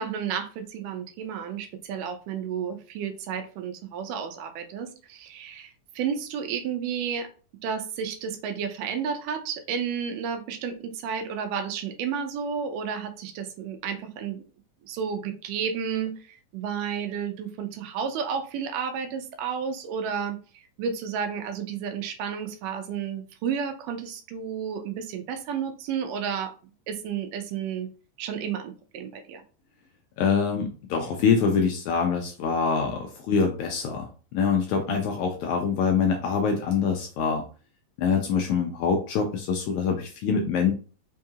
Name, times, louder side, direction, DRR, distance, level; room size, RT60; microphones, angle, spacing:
voice 1, 0.0-7.3 7.6-14.4 14.8-26.5 26.9-27.9 28.2-29.4 34.9-35.0, right 7 dB, 80° right, 7 dB, 2.1 m, -32 dB
voice 2, 30.2-37.4 38.0-40.7, left 6 dB, 80° left, 2 dB, 1.7 m, -25 dB
5.4 x 2.3 x 2.8 m, 0.37 s
omnidirectional pair, 3.8 m